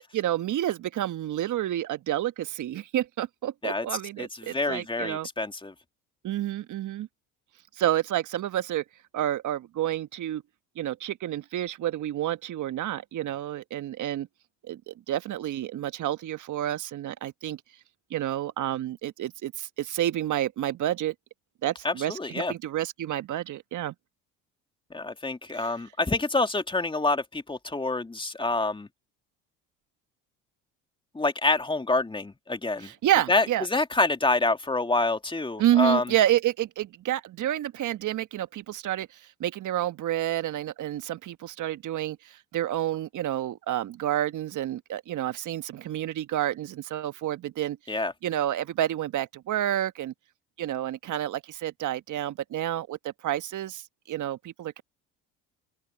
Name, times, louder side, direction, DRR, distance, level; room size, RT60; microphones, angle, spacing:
voice 1, 0.1-5.3 6.2-7.1 7.8-8.8 9.1-10.4 10.7-14.3 14.7-17.6 18.1-21.1 21.6-23.9 25.5-25.7 32.8-33.7 35.6-47.8 48.2-50.1 50.6-54.8, right 12 dB, 50° right, 1.5 m, -29 dB
voice 2, 4.2-5.7 21.8-22.5 24.9-28.9 31.1-32.9 33.3-36.1 47.9-48.1, left 2 dB, 15° left, 2.3 m, -27 dB
open air
hypercardioid pair, 70°, 37 cm